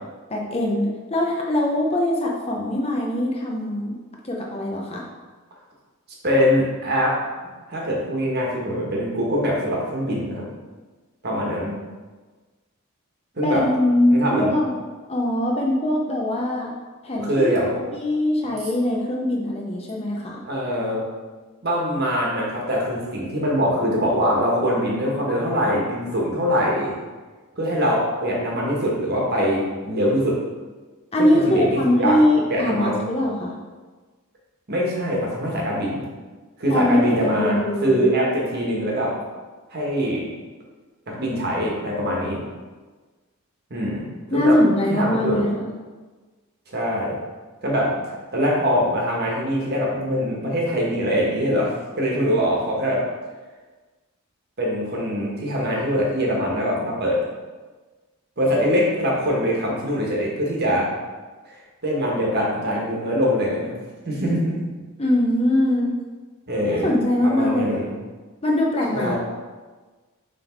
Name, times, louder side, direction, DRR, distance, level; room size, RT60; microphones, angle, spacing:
voice 1, 0.3-4.0 4.2-5.1 13.4-14.7 15.1-16.7 17.0-17.5 17.9-20.4 31.1-33.6 36.7-38.0 44.3-45.7 65.0-65.9 66.7-67.9 68.4-69.2, left 1 dB, 25° left, -1 dB, 0.7 m, -22 dB
voice 2, 6.2-7.1 7.7-10.4 11.2-11.7 13.3-13.6 14.1-14.5 17.2-17.8 20.4-21.0 21.6-26.9 27.6-30.4 31.2-32.2 32.5-33.1 34.7-36.1 36.6-39.1 39.7-40.3 41.1-42.4 43.7-44.1 44.3-44.5 44.9-45.4 46.7-47.2 47.6-48.0 48.3-51.7 51.9-53.0 54.6-57.2 58.4-60.9 61.8-63.8 64.0-64.6 66.5-66.9 67.2-67.9 68.9-69.2, equal, 45° right, -3 dB, 1.4 m, -23 dB
5.9 x 3.5 x 4.5 m, 1.3 s
head